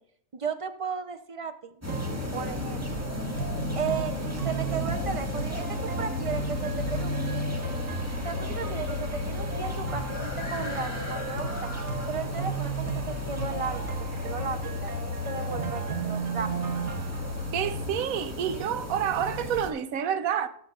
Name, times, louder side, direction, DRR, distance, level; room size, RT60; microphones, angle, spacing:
voice 1, 0.3-1.8 2.3-3.1 3.8-4.1 4.4-7.4 8.2-11.7 12.1-16.5, right 5 dB, 35° right, 0.6 m, -35 dB
sound 1, 1.8-19.7, equal, 10° right, 1.7 m, -34 dB
sound 2, 1.9-17.9, right 2 dB, 60° right, 1.2 m, -35 dB
voice 2, 17.5-20.5, right 9 dB, 90° right, 1.2 m, -28 dB
20.0 x 7.0 x 2.4 m
omnidirectional pair, 1.4 m